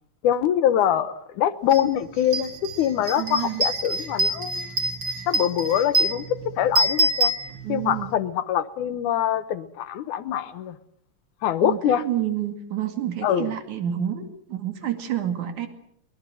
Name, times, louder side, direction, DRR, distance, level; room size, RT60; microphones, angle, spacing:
voice 1, 0.2-4.7 5.3-6.3 6.6-7.3 7.7-10.8 11.4-12.0 13.2-13.5, left 10 dB, 80° left, 13 dB, 2.6 m, -24 dB
sound 1, 1.7-1.8 2.2-8.0, right 2 dB, 35° right, 3.0 m, -26 dB
voice 2, 3.2-3.6 7.6-8.1 11.6-15.7, right 10 dB, 75° right, 7 dB, 3.7 m, -29 dB
23.5 x 21.0 x 7.7 m, 0.72 s
omnidirectional pair, 3.5 m